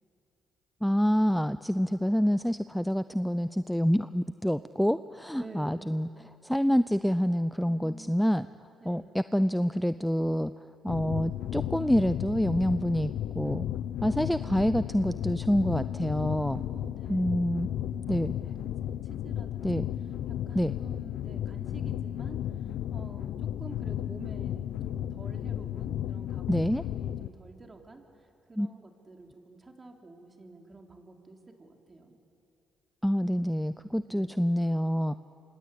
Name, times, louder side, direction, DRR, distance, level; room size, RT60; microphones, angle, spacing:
voice 1, 0.8-6.1 6.4-8.5 8.8-10.5 10.8-13.7 14.0-16.6 17.1-17.7 18.1-18.3 19.6-19.8 20.5-20.7 26.5-26.8 28.6-28.7 33.0-35.1, equal, ahead, 13 dB, 0.6 m, -27 dB
voice 2, 5.4-6.0 7.7-8.2 8.8-9.1 16.5-18.2 18.4-19.8 20.5-22.4 22.9-28.0 28.5-32.2 34.0-34.3, right 2 dB, 30° right, 2 dB, 3.9 m, -49 dB
sound 1, 10.9-27.3, left 11 dB, 75° left, 0.7 m, -34 dB
27.5 x 25.0 x 8.5 m, 2.8 s
supercardioid pair, 65°, 0 cm